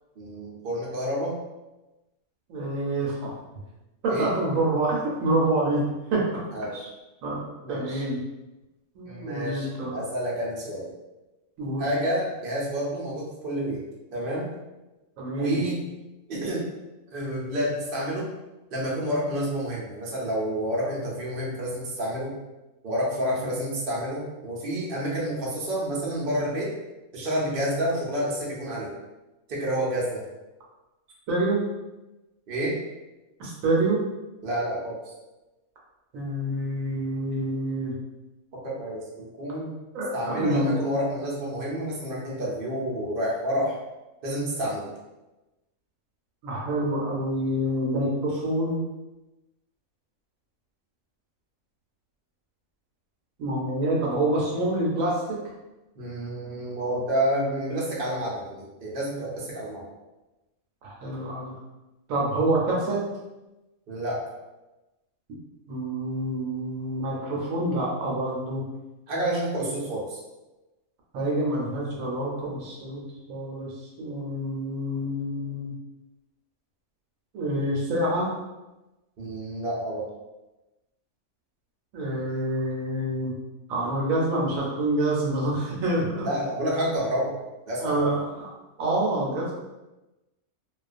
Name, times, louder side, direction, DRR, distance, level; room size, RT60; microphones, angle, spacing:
voice 1, 0.2-1.3 4.1-4.3 6.5-6.9 7.6-8.0 9.0-10.9 11.8-13.8 14.1-14.5 15.4-15.8 16.3-16.7 17.1-18.3 18.7-22.3 22.8-26.8 27.1-28.9 29.5-30.2 32.5-32.8 34.4-35.0 38.6-39.8 40.1-43.8 44.2-44.9 56.0-59.8 63.9-64.2 69.1-70.2 79.2-80.1 86.2-87.3 87.7-88.1, equal, 50° right, -5 dB, 0.7 m, -29 dB
voice 2, 2.5-3.3 4.0-5.8 6.1-6.4 7.2-8.2 8.9-9.9 11.6-11.9 15.2-15.6 23.4-23.5 31.3-31.6 33.4-34.0 36.1-37.9 39.9-40.7 46.4-48.8 53.4-55.4 60.8-61.5 62.1-63.0 65.7-68.6 71.1-73.0 73.3-73.7 74.0-75.7 77.3-78.3 81.9-83.3 83.7-86.3 87.8-88.5 88.8-89.6, right 1 dB, 75° right, -4 dB, 1.0 m, -27 dB
2.3 x 2.3 x 2.4 m, 1.0 s
omnidirectional pair, 1.5 m